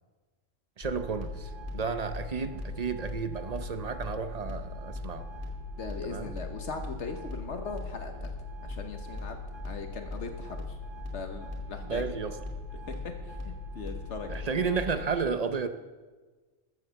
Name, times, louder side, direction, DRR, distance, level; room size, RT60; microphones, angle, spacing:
sound 1, 0.8-15.1, left 2 dB, 40° left, 2.1 m, -39 dB
voice 1, 0.8-5.3 6.0-6.3 11.8-12.4 14.3-15.7, right 5 dB, 40° right, 10 dB, 0.7 m, -32 dB
voice 2, 5.8-8.3 8.7-9.4 9.6-10.8 11.1-12.0 12.9-13.1 13.4-14.5, left 4 dB, 65° left, 6 dB, 1.2 m, -39 dB
13.5 x 7.2 x 6.8 m, 1.3 s
omnidirectional pair, 1.3 m